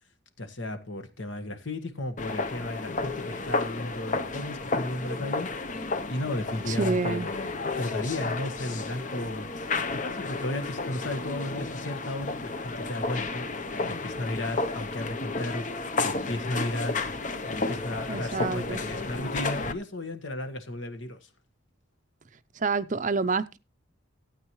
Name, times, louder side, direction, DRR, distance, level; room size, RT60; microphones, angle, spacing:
voice 1, 0.4-9.5 10.0-13.5 13.9-15.7 16.0-21.3, left 1 dB, 65° left, 1.6 m, -34 dB
sound 1, 2.2-19.7, left 3 dB, 40° left, 0.8 m, -32 dB
voice 2, 6.7-7.3 18.1-18.8 22.6-23.6, right 4 dB, 40° right, 0.6 m, -28 dB
16.0 x 8.9 x 3.1 m
head